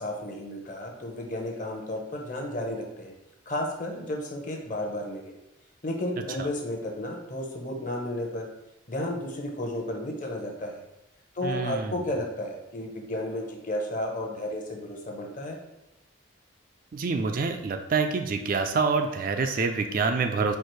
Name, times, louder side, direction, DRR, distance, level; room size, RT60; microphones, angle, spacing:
voice 1, 0.0-3.1 3.5-5.3 5.8-8.5 8.9-10.8 11.3-15.6, left 1 dB, 40° left, 1 dB, 0.8 m, -33 dB
voice 2, 11.4-11.9 16.9-20.6, right 4 dB, 45° right, 6 dB, 0.4 m, -26 dB
4.5 x 2.4 x 4.6 m, 0.88 s
head